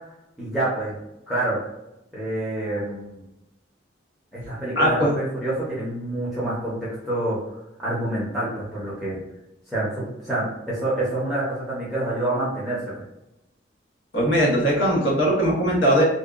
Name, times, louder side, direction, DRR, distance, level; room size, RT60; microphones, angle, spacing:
voice 1, 0.4-1.0 1.3-1.6 2.1-3.2 4.3-9.2 9.7-12.8, right 1 dB, ahead, -10 dB, 0.6 m, -27 dB
voice 2, 4.8-5.1 14.1-16.0, equal, 80° left, -4 dB, 0.9 m, -20 dB
2.6 x 2.2 x 2.3 m, 0.93 s
head